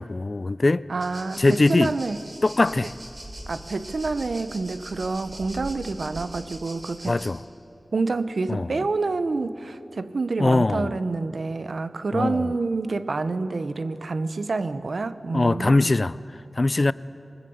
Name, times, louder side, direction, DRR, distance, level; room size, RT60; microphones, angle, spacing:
voice 1, 0.0-0.9 1.4-1.9 2.4-2.9 7.0-7.4 8.5-8.8 10.4-11.0 12.1-12.6 15.3-16.2 16.5-16.9, left 2 dB, 50° left, 0.5 m, -21 dB
voice 2, 0.9-2.2 3.5-7.2 7.9-15.9, right 3 dB, 75° right, 0.8 m, -28 dB
sound 1, 1.0-7.3, right 1 dB, 40° right, 3.7 m, -41 dB
23.5 x 21.0 x 7.9 m
wide cardioid pair, 50°, 0 cm